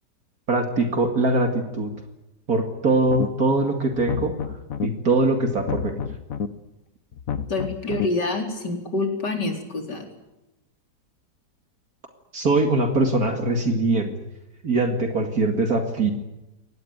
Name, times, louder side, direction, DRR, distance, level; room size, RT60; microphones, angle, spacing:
voice 1, 0.5-1.9 2.5-4.3 4.8-6.0 12.3-14.1 14.6-16.1, right 2 dB, 55° right, 4 dB, 2.8 m, -22 dB
sound 1, 3.1-3.5 3.9-4.9 5.5-6.5 7.1-8.1, left 7 dB, 55° left, 1.5 m, -30 dB
voice 2, 7.5-10.1, left 2 dB, 70° left, 3 dB, 4.8 m, -27 dB
23.5 x 19.0 x 9.5 m, 0.99 s
omnidirectional pair, 1.9 m